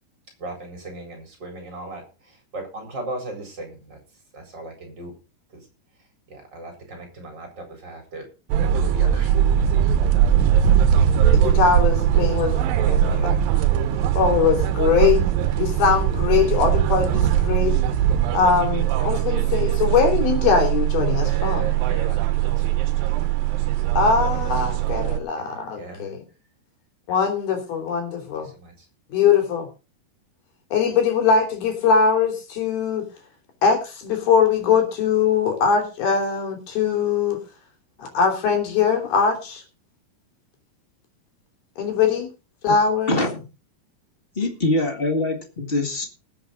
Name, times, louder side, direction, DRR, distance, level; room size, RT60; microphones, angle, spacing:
voice 1, 0.4-4.0 4.3-5.1 5.5-5.6 6.3-8.3 8.7-9.7 12.8-13.5 21.1-22.7 24.3-24.4 25.4-26.1 28.5-28.7, right 2 dB, 25° right, 3 dB, 4.6 m, -38 dB
sound 1, 8.5-25.2, right 10 dB, 70° right, 2.5 m, -20 dB
voice 2, 11.3-13.7 14.1-15.2 15.6-17.8 18.3-21.8 24.0-26.2 27.1-28.5 29.1-29.7 30.7-33.1 33.6-37.4 38.0-39.6 41.8-42.3 42.6-43.2, left 6 dB, 70° left, 3 dB, 4.8 m, -21 dB
voice 3, 43.1-43.4 44.3-46.0, left 2 dB, 45° left, 4 dB, 0.7 m, -23 dB
20.0 x 8.0 x 3.9 m, 0.32 s
omnidirectional pair, 4.6 m